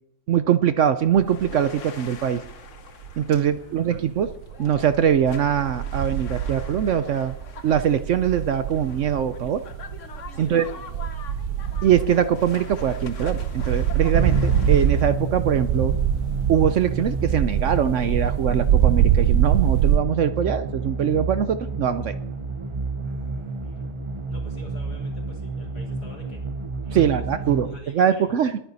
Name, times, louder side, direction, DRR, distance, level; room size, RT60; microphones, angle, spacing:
voice 1, 0.3-2.4 3.2-4.3 4.6-7.3 7.6-9.6 10.4-10.7 11.8-15.9 16.5-22.1 26.9-28.6, right 9 dB, 65° right, 12 dB, 0.8 m, -22 dB
sound 1, 1.2-1.8 2.2-3.5 4.0-20.0, right 10 dB, 85° right, 1.3 m, -25 dB
sound 2, 1.3-15.1, left 6 dB, 50° left, 1.2 m, -44 dB
voice 2, 3.6-4.1 10.3-11.1 23.0-23.9 24.3-26.4 26.8-28.5, left 1 dB, 65° left, 1 dB, 4.3 m, -48 dB
sound 3, 14.1-27.8, right 3 dB, 35° right, 0.5 m, -30 dB
20.5 x 9.1 x 4.1 m, 0.79 s
omnidirectional pair, 1.8 m